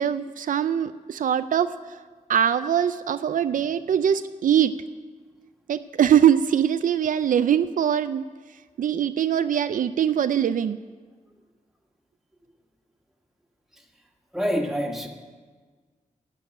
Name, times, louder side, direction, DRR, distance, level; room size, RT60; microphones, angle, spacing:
voice 1, 0.0-2.0 2.3-4.7 5.7-8.3 8.8-10.8, right 9 dB, 75° right, 11 dB, 0.4 m, -22 dB
voice 2, 14.3-15.1, equal, 5° right, 2 dB, 1.6 m, -26 dB
11.5 x 7.1 x 9.0 m, 1.5 s
wide cardioid pair, 90°, 14 cm